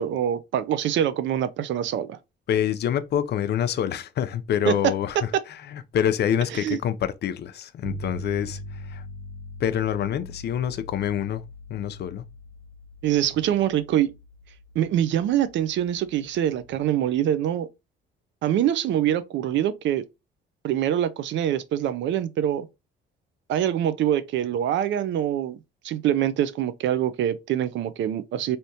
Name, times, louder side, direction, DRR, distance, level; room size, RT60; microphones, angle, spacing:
voice 1, 0.0-2.2 4.7-4.8 6.5-6.8 13.0-14.1 14.8-17.7 18.4-20.0 20.6-22.7 23.5-25.6 25.8-28.6, right 11 dB, 70° right, 0.5 m, -24 dB
voice 2, 2.5-9.0 9.6-11.4 11.7-12.2, left 9 dB, 60° left, 0.5 m, -26 dB
sound 1, 7.8-16.8, left 1 dB, 45° right, 0.8 m, -41 dB
3.4 x 2.7 x 2.7 m
cardioid pair, 105°, 20 cm